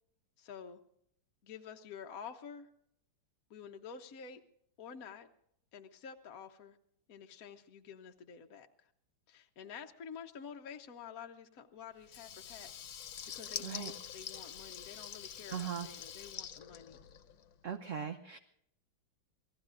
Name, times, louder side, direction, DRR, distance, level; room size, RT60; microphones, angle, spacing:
voice 1, 0.4-0.8 1.4-2.7 3.5-4.4 4.8-5.3 5.7-6.8 7.1-8.9 9.3-12.7 13.3-17.0, left 7 dB, 55° left, 4 dB, 1.2 m, -49 dB
Water tap faucet / Liquid, 12.0-17.5, left 9 dB, 85° left, 1.8 m, -46 dB
voice 2, 15.5-15.9 17.6-18.4, right 8 dB, 55° right, 7 dB, 1.0 m, -39 dB
28.0 x 19.0 x 2.5 m, 0.73 s
omnidirectional pair, 2.1 m